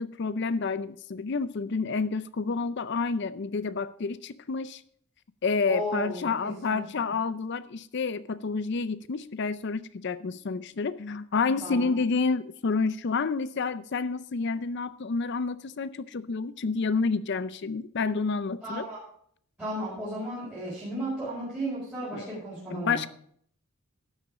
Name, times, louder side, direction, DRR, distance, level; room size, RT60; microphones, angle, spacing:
voice 1, 0.0-4.8 5.4-18.8 22.1-22.3 22.7-23.1, left 4 dB, 50° left, 0.5 m, -29 dB
voice 2, 5.7-7.1 11.6-12.0 18.6-19.0 19.6-23.1, right 1 dB, 10° right, 4.8 m, -34 dB
12.0 x 7.3 x 4.9 m
head